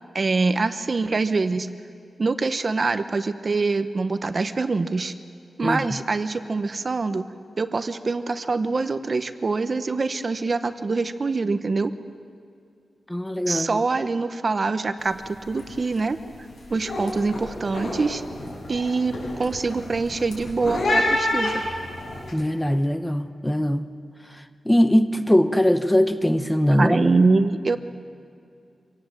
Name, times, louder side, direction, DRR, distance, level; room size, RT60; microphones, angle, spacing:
voice 1, 0.1-1.7 2.2-5.1 5.6-7.2 7.6-11.9 13.5-16.2 16.7-18.2 18.7-21.6 26.7-27.8, right 3 dB, 40° right, 10 dB, 0.9 m, -24 dB
voice 2, 13.1-13.8 22.3-23.9 24.3-27.0, equal, 5° left, 9 dB, 0.8 m, -21 dB
sound 1, 15.0-15.3 15.5-16.0 16.4-22.3, left 1 dB, 70° left, 7.8 m, -28 dB
25.0 x 18.0 x 7.7 m, 2.5 s
wide cardioid pair, 130°, 0 cm